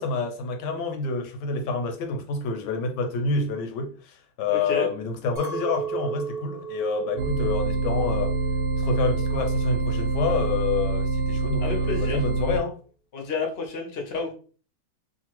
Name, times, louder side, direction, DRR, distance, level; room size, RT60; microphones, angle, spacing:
voice 1, 0.0-8.3 8.8-12.7, left 4 dB, 80° left, 1.2 m, -28 dB
voice 2, 4.5-4.9 11.6-12.2 13.1-14.3, left 4 dB, 55° left, 0.7 m, -30 dB
Chink clink, 5.4-9.8 10.1-10.7, right 6 dB, 35° right, 1.1 m, -36 dB
sound 1, 7.2-12.6, right 3 dB, 70° right, 1.0 m, -26 dB
2.9 x 2.4 x 2.9 m
omnidirectional pair, 1.9 m